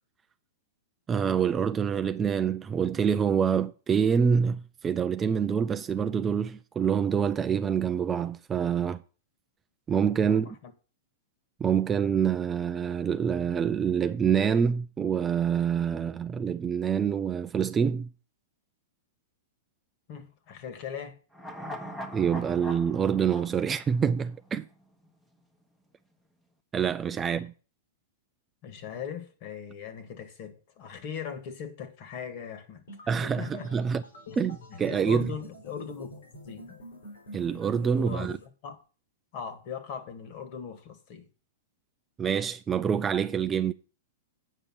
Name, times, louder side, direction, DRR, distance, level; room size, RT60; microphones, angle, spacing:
voice 1, 1.1-9.0 9.9-10.6 11.6-18.1 22.1-24.7 26.7-27.5 33.1-34.0 34.4-35.3 37.3-38.3 42.2-43.7, right 7 dB, 15° right, 0.4 m, -26 dB
voice 2, 10.3-10.7 20.1-21.2 28.6-33.7 34.3-34.4 34.7-36.1 36.5-36.8 37.9-38.3 38.6-38.8 39.3-41.3, left 7 dB, 45° left, 2.0 m, -40 dB
sound 1, 21.3-24.7 25.0-25.1, equal, 5° left, 1.2 m, -41 dB
sound 2, 32.9-38.4, left 1 dB, 85° left, 4.0 m, -46 dB
8.4 x 5.2 x 7.4 m
hypercardioid pair, 140°, 0 cm